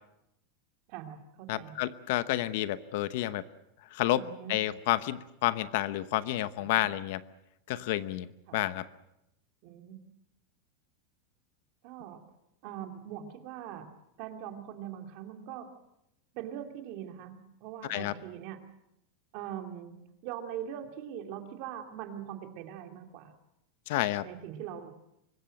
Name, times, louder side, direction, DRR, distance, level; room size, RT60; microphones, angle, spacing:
voice 1, 0.9-1.8 4.1-4.5 6.6-6.9 8.5-8.6 9.6-10.0 11.8-12.2 12.6-13.9 14.2-15.7 16.3-18.6 19.3-23.3 24.2-24.9, right 10 dB, 40° right, 5 dB, 2.6 m, -42 dB
voice 2, 1.5-3.4 3.9-4.2 4.5-7.2 7.7-8.3 8.5-8.9 17.9-18.1 23.9-24.2, left 15 dB, 50° left, 14 dB, 0.9 m, -30 dB
24.5 x 21.0 x 7.7 m, 0.82 s
supercardioid pair, 175°, 0 cm